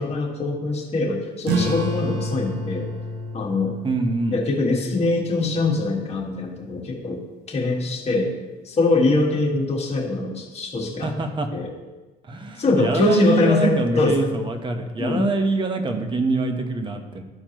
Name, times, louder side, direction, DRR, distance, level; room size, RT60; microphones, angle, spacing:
voice 1, 0.0-2.9 3.3-3.7 4.3-7.2 7.5-8.3 8.6-11.1 11.5-11.7 12.6-14.2 15.0-15.3, left 3 dB, 40° left, -1 dB, 1.6 m, -23 dB
sound 1, 1.4-6.5, right 1 dB, 90° right, 1.0 m, -30 dB
voice 2, 3.8-4.4 11.0-11.5 12.2-17.2, right 3 dB, 30° right, 5 dB, 1.0 m, -24 dB
13.0 x 4.4 x 3.0 m, 1.2 s
cardioid pair, 110°, 17 cm